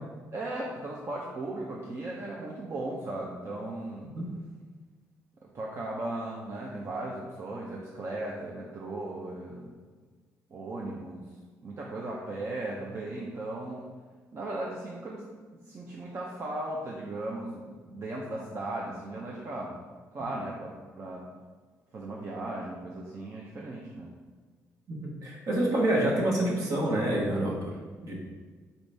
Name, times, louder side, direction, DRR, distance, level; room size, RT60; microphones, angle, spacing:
voice 1, 0.3-4.1 5.5-9.7 10.5-11.3 11.6-13.9 14.3-15.2 15.5-19.8 20.1-21.2 21.9-24.1, right 2 dB, 45° right, -3 dB, 0.7 m, -37 dB
voice 2, 25.2-27.7 28.0-28.1, right 1 dB, 60° right, -2 dB, 1.3 m, -27 dB
4.0 x 3.9 x 3.3 m, 1.5 s
cardioid pair, 80°, 6 cm